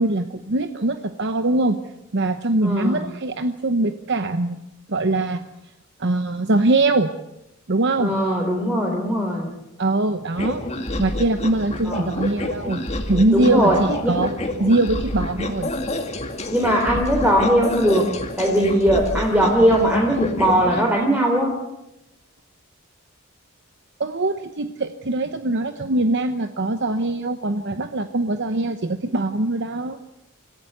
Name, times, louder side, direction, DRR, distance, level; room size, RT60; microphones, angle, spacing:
voice 1, 0.0-1.8 2.1-4.6 4.9-5.4 6.0-7.1 7.7-8.1 9.8-10.6 11.0-12.8 13.1-14.3 14.6-15.7 24.0-30.0, right 2 dB, 55° right, 8 dB, 1.0 m, -22 dB
voice 2, 2.6-3.0 8.0-9.5 11.8-12.1 13.3-13.8 14.0-14.1 16.5-18.1 18.4-21.5, equal, 10° right, 0 dB, 3.5 m, -19 dB
sound 1, 10.3-20.8, left 1 dB, 30° left, 2.1 m, -29 dB
26.0 x 15.5 x 8.0 m, 0.89 s
head